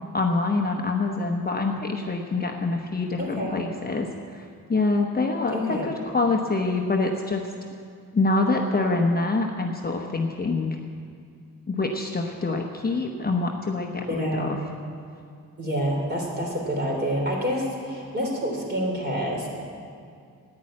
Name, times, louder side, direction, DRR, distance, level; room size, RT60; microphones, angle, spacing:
voice 1, 0.1-7.5 8.1-10.8 11.7-14.6, left 3 dB, 25° left, 1 dB, 0.9 m, -25 dB
voice 2, 3.2-3.6 5.5-5.8 14.1-14.6 15.6-19.5, equal, 30° right, -1 dB, 3.5 m, -27 dB
11.0 x 9.7 x 8.7 m, 2.3 s
wide cardioid pair, 115°, 35 cm